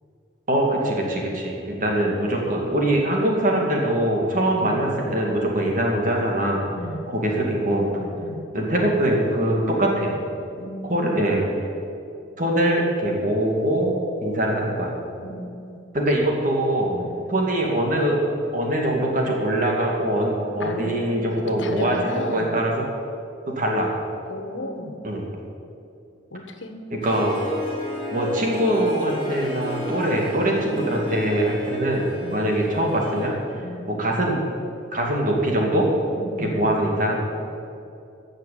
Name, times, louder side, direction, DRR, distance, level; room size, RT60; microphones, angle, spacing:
voice 1, 0.5-6.6 7.1-7.9 8.5-10.1 10.8-11.4 12.4-13.9 14.2-14.9 15.9-16.9 17.3-18.2 18.5-22.8 23.5-23.9 25.0-25.2 27.0-27.4 28.1-33.6 33.9-34.4 34.9-35.9 36.4-37.1, right 1 dB, 45° right, -1 dB, 2.4 m, -23 dB
voice 2, 6.7-7.0 8.0-8.4 10.6-11.5 15.2-15.8 16.8-17.1 20.6-22.5 24.3-24.9 26.3-26.8 30.6-30.9 32.1-32.4 33.6-33.9 36.1-36.7, left 1 dB, 80° left, 5 dB, 1.5 m, -35 dB
Harp, 27.0-33.3, left 1 dB, 30° left, 3.6 m, -32 dB
15.5 x 6.6 x 9.5 m, 2.6 s
head